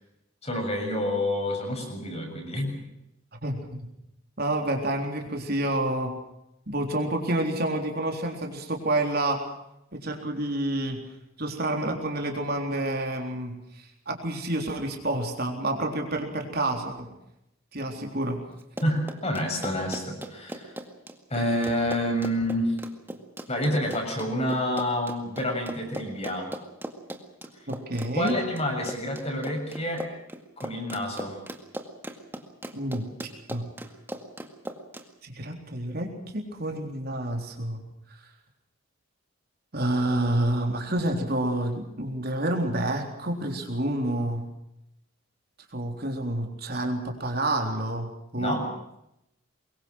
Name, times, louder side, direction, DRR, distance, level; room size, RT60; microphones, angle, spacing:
voice 1, 0.4-2.8 18.8-20.7 21.3-22.8 23.5-26.5 28.1-30.0 30.6-31.4 48.4-48.7, left 1 dB, 30° left, 2 dB, 7.0 m, -28 dB
voice 2, 3.4-3.9 4.4-6.1 6.7-9.4 9.9-11.0 11.4-17.1 17.7-18.4 27.7-28.3 32.7-33.1 33.5-33.7 35.2-37.8 39.7-44.5 45.7-48.6, right 1 dB, 45° right, 3 dB, 3.8 m, -29 dB
Run, 18.6-35.1, right 1 dB, 10° right, 2.0 m, -38 dB
25.0 x 22.5 x 6.4 m, 0.84 s
head